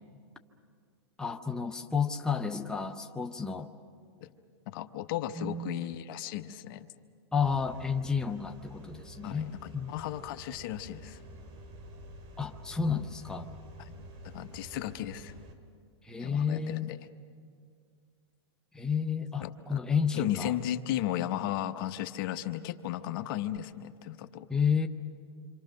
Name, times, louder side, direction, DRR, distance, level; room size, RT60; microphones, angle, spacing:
voice 1, 1.2-3.7 5.4-5.9 7.3-9.9 12.4-13.5 16.0-16.9 18.7-20.5 24.5-24.9, left 6 dB, 5° left, 4 dB, 0.8 m, -31 dB
voice 2, 4.7-6.9 9.2-11.2 13.8-15.3 16.2-17.0 19.4-19.8 20.1-24.5, left 12 dB, 50° left, 10 dB, 0.9 m, -35 dB
sound 1, 7.4-15.5, right 1 dB, 35° right, 2.3 m, -49 dB
26.5 x 26.5 x 6.5 m, 2.2 s
hypercardioid pair, 135°, 14 cm